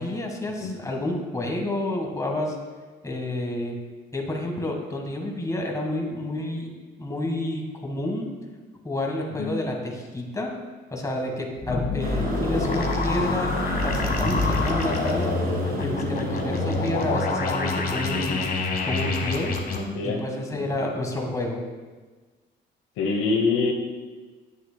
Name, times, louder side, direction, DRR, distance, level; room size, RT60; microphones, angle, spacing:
voice 1, 0.0-2.6 3.0-3.8 4.1-6.7 7.0-8.3 8.8-10.5 10.9-18.4 18.8-19.5 20.0-21.6, left 1 dB, 15° left, 1 dB, 1.4 m, -29 dB
sound 1, 11.6-19.8, left 3 dB, 50° left, 1.1 m, -26 dB
sound 2, 12.0-17.2, right 3 dB, 50° right, 1.6 m, -32 dB
voice 2, 19.7-20.2 20.5-20.6 23.0-23.7, left 4 dB, 85° left, 2 dB, 0.8 m, -25 dB
9.2 x 7.9 x 2.2 m, 1.4 s
cardioid pair, 90°, 20 cm